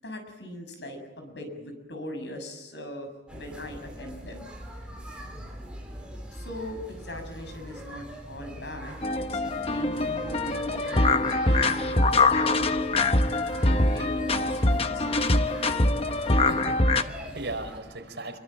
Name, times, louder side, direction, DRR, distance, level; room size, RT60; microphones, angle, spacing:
voice 1, 0.0-4.4 6.3-15.2, left 1 dB, 75° left, 6 dB, 7.0 m, -40 dB
sound 1, 3.3-17.8, equal, 5° right, 5.5 m, -42 dB
sound 2, 9.0-17.0, left 2 dB, 30° left, 1.0 m, -24 dB
voice 2, 16.2-18.4, right 2 dB, 75° right, 5 dB, 4.8 m, -38 dB
26.0 x 23.0 x 9.0 m, 1.1 s
head